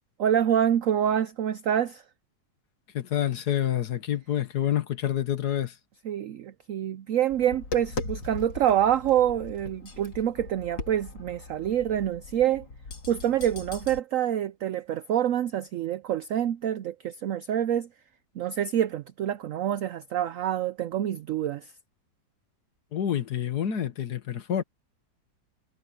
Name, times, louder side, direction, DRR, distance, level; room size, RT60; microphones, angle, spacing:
voice 1, 0.2-2.0 6.0-12.7 13.1-17.9 18.4-21.7, right 10 dB, 80° right, 0.7 m, -26 dB
voice 2, 2.9-5.7 22.9-24.6, left 10 dB, 60° left, 1.7 m, -28 dB
Tap, 7.3-14.0, left 3 dB, 80° left, 3.0 m, -39 dB
omnidirectional pair, 2.0 m